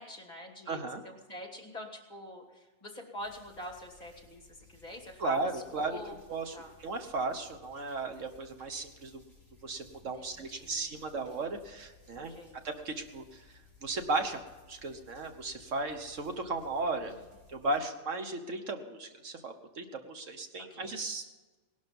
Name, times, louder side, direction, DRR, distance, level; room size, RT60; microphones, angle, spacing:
voice 1, 0.0-6.2 6.5-6.7 10.2-11.1 12.2-12.6 17.0-17.2 20.7-21.1, left 1 dB, 30° left, 2 dB, 2.6 m, -46 dB
voice 2, 0.7-1.0 5.2-6.0 6.3-9.2 9.6-12.3 12.6-13.5 13.8-14.4 14.7-17.2 17.5-21.2, right 3 dB, 65° right, 7 dB, 1.4 m, -35 dB
sound 1, 3.2-17.8, left 5 dB, 30° right, 5.2 m, -60 dB
19.0 x 12.0 x 5.4 m, 1.3 s
omnidirectional pair, 1.4 m